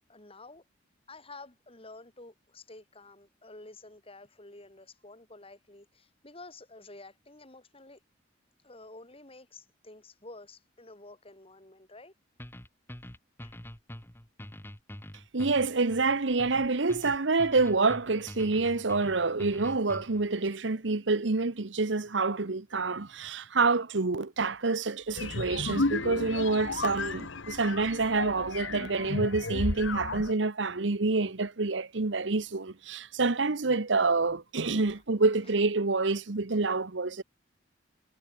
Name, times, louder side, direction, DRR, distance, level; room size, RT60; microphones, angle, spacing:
voice 1, 0.1-0.6 1.1-8.0 8.6-12.1 13.4-13.6, left 2 dB, 30° left, 6.1 m, -50 dB
sound 1, 12.4-20.3, equal, 10° left, 1.9 m, -45 dB
voice 2, 15.3-37.2, right 3 dB, 70° right, 1.1 m, -27 dB
sound 2, 25.2-30.3, left 3 dB, 80° left, 1.4 m, -33 dB
head